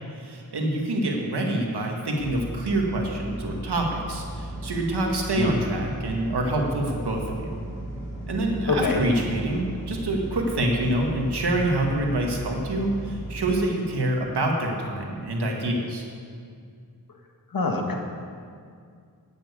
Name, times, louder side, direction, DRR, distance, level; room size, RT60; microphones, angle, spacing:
voice 1, 0.1-7.5 8.3-16.0, right 1 dB, 90° right, 0 dB, 2.0 m, -26 dB
sound 1, 2.2-13.7, right 1 dB, 30° left, 3.8 m, -36 dB
voice 2, 8.7-9.0 17.5-17.9, left 3 dB, 60° left, 2 dB, 1.7 m, -24 dB
9.2 x 9.1 x 8.3 m, 2.2 s
wide cardioid pair, 75°, 39 cm